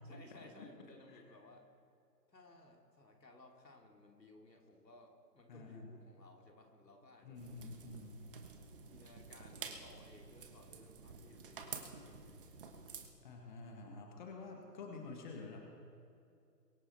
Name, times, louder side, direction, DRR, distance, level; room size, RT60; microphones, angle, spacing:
voice 1, 0.0-1.7 2.3-7.5 8.9-12.5, left 2 dB, 80° left, 2 dB, 2.9 m, -60 dB
voice 2, 0.6-1.2 5.5-6.0 7.2-8.2 12.3-12.4 13.2-15.6, left 3 dB, 30° left, 1 dB, 1.7 m, -49 dB
sound 1, 7.3-13.1, right 5 dB, 35° right, 1.3 m, -50 dB
23.0 x 9.8 x 4.5 m, 2.5 s
figure-of-eight pair, 145°, 49 cm